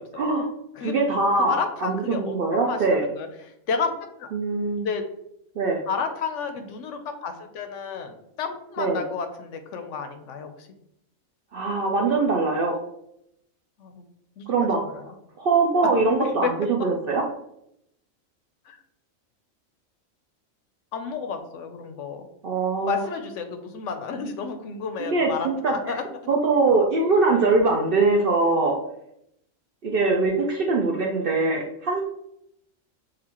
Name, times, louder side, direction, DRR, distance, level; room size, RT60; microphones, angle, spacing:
voice 1, 0.2-0.5 0.8-1.6 1.8-3.1 4.3-4.9 5.6-5.8 8.8-9.0 11.5-12.7 14.5-15.1 15.4-17.2 22.4-23.0 25.0-25.7 26.3-28.8 29.8-32.0, right 3 dB, 60° right, 1 dB, 0.6 m, -22 dB
voice 2, 1.4-3.9 4.2-4.6 4.8-5.0 5.9-10.7 13.8-14.0 14.4-15.1 15.8-15.9 16.2-16.5 18.7-18.8 20.9-22.3 22.9-26.0, left 5 dB, 70° left, 7 dB, 0.9 m, -32 dB
6.6 x 2.4 x 2.9 m, 0.78 s
omnidirectional pair, 1.4 m